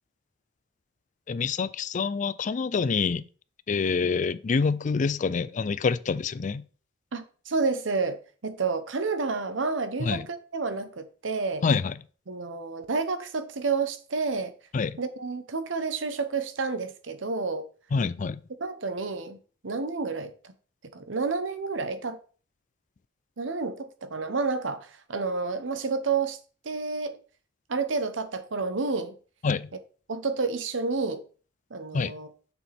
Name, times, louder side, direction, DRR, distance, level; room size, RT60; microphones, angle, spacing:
voice 1, 1.3-3.2 3.7-6.6 10.0-10.3 11.6-11.9 14.7-15.0 17.9-18.4 29.4-29.7 31.9-32.1, left 5 dB, 40° left, 0.4 m, -26 dB
voice 2, 7.1-11.6 12.3-14.5 15.0-17.7 18.6-19.4 19.6-20.5 20.9-22.2 23.4-26.4 26.6-27.2 27.7-29.1 30.1-31.2 31.7-32.3, right 4 dB, 80° right, 0.9 m, -30 dB
7.1 x 6.2 x 3.4 m
head